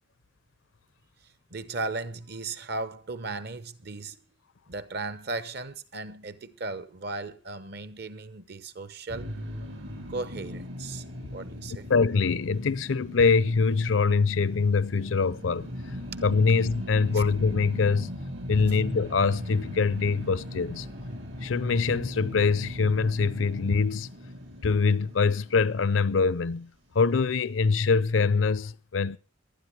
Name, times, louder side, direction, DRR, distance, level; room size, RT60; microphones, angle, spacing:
voice 1, 1.5-4.2 4.7-9.3 10.1-11.0 11.3-11.9 17.1-17.2, right 3 dB, 55° right, 1.1 m, -36 dB
sound 1, 9.1-26.3, equal, 80° right, 4.8 m, -39 dB
voice 2, 11.9-15.7 16.2-18.1 18.5-20.9 21.4-24.1 24.6-26.7 26.9-29.2, left 4 dB, 80° left, 0.6 m, -24 dB
18.5 x 12.0 x 4.7 m
head